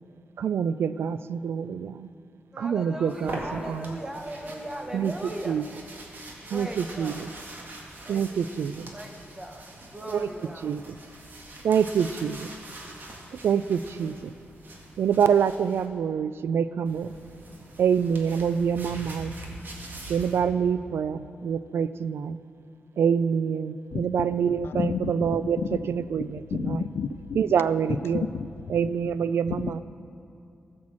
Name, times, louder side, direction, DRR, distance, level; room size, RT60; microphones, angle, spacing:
voice 1, 0.4-2.1 2.6-3.9 4.9-5.1 5.5-5.7 6.5-7.3 8.1-8.9 10.1-10.3 10.6-10.9 11.6-12.5 13.4-14.3 15.0-17.1 17.8-19.3 20.1-22.4 23.0-25.6 25.9-26.8 27.3-28.3 28.7-29.8, right 7 dB, 85° right, 14 dB, 0.3 m, -26 dB
voice 2, 2.5-5.6 6.5-7.2 8.0-10.8, right 1 dB, 15° right, 3 dB, 1.3 m, -39 dB
sound 1, 3.1-15.9 16.8-20.4, right 1 dB, 55° right, 1.9 m, -43 dB
voice 3, 24.6-25.4 26.5-27.4 28.3-28.5 29.6-29.7, left 6 dB, 75° left, 12 dB, 0.4 m, -30 dB
15.5 x 6.2 x 7.3 m, 2.5 s
wide cardioid pair, 125°, 4 cm